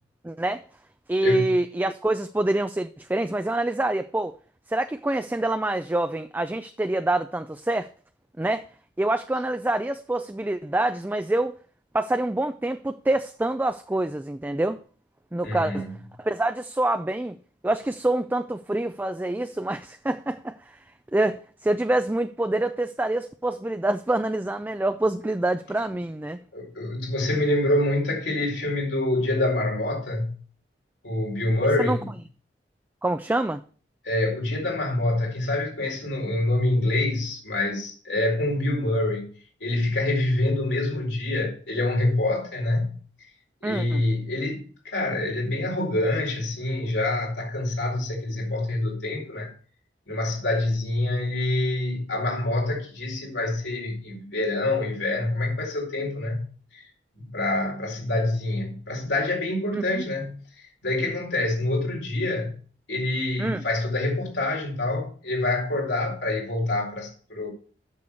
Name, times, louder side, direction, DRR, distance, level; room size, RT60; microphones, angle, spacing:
voice 1, 0.2-0.6 1.1-4.3 4.7-7.9 8.4-8.7 9.0-11.5 11.9-14.8 15.3-15.9 16.2-17.4 17.6-20.8 21.1-26.4 31.8-32.0 33.0-33.6 43.6-44.0 59.7-60.1 63.4-63.6, right 1 dB, 10° right, 0.4 m, -26 dB
voice 2, 15.4-15.9 26.5-30.4 31.0-32.1 34.0-39.3 39.6-43.0 43.6-49.5 50.1-56.4 56.7-56.8 57.2-62.6 62.9-67.5, left 2 dB, 85° left, 4.3 m, -26 dB
8.3 x 6.5 x 7.0 m
head